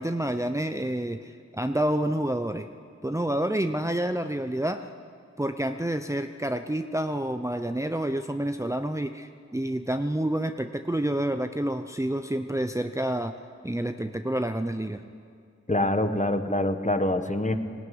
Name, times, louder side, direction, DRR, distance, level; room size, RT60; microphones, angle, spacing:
voice 1, 0.0-2.7 3.0-4.9 5.4-13.4 13.6-15.0, right 1 dB, 10° right, 7 dB, 0.7 m, -28 dB
voice 2, 15.7-17.6, left 1 dB, 25° left, 8 dB, 1.3 m, -25 dB
19.5 x 16.5 x 9.5 m, 2.3 s
wide cardioid pair, 45°, 29 cm